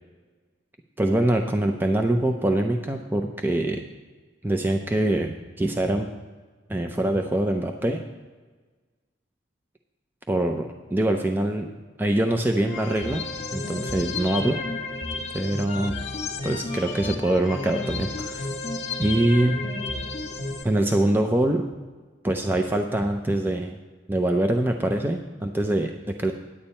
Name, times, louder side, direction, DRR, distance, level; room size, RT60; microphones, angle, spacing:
voice 1, 1.0-3.8 4.4-6.1 6.7-8.0 10.3-11.7 12.0-13.2 13.5-14.6 15.3-16.0 16.4-18.5 19.0-19.6 20.6-21.7 22.2-23.8 24.1-26.3, right 1 dB, 10° right, 4 dB, 0.5 m, -24 dB
sound 1, 12.6-20.6, left 2 dB, 40° left, 1.3 m, -32 dB
9.9 x 8.8 x 4.3 m, 1.3 s
head